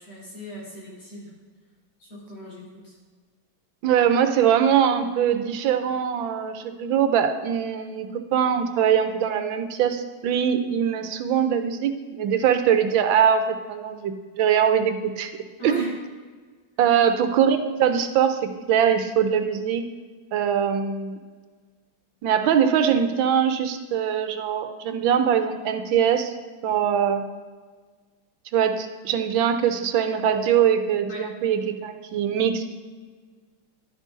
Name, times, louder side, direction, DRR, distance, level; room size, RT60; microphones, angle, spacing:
voice 1, 0.0-1.4 2.0-3.0 15.6-16.0 31.1-31.3, right 1 dB, 90° left, -7 dB, 4.2 m, -37 dB
voice 2, 3.8-15.3 15.6-15.8 16.8-19.8 20.3-21.2 22.2-26.3 26.6-27.2 28.5-32.7, right 8 dB, 90° right, 8 dB, 1.5 m, -22 dB
11.5 x 9.9 x 2.7 m, 1.5 s
omnidirectional pair, 2.1 m